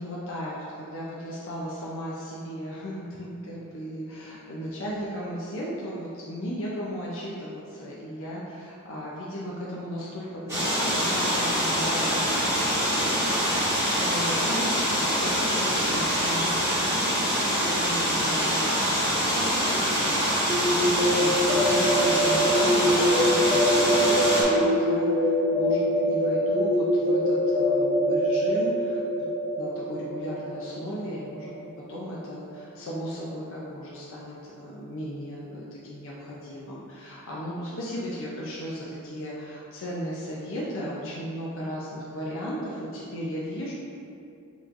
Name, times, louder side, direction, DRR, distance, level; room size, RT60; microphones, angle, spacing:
voice 1, 0.0-24.2 24.5-29.2 29.6-43.7, equal, 60° left, -6 dB, 0.6 m, -36 dB
sound 1, 10.5-24.4, equal, 15° right, 1.5 m, -25 dB
sound 2, 20.5-32.2, equal, ahead, 0.5 m, -24 dB
5.6 x 3.1 x 2.5 m, 2.5 s
head